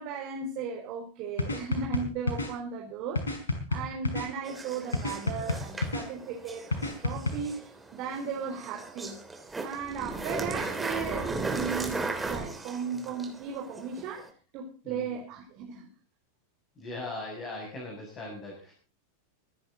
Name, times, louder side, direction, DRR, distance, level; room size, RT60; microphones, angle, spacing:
voice 1, 0.0-9.2 9.5-14.3 14.5-15.9, right 6 dB, 40° right, 0 dB, 4.0 m, -36 dB
sound 1, 1.4-2.5 3.2-4.3 4.9-6.0 6.7-7.3, left 2 dB, 70° left, 5.0 m, -29 dB
sound 2, 4.4-14.3, right 3 dB, 10° right, 2.9 m, -37 dB
voice 2, 14.8-15.2 16.7-18.7, left 2 dB, 25° left, -1 dB, 6.8 m, -40 dB
25.0 x 10.5 x 3.9 m, 0.34 s
figure-of-eight pair, 90°, 0 cm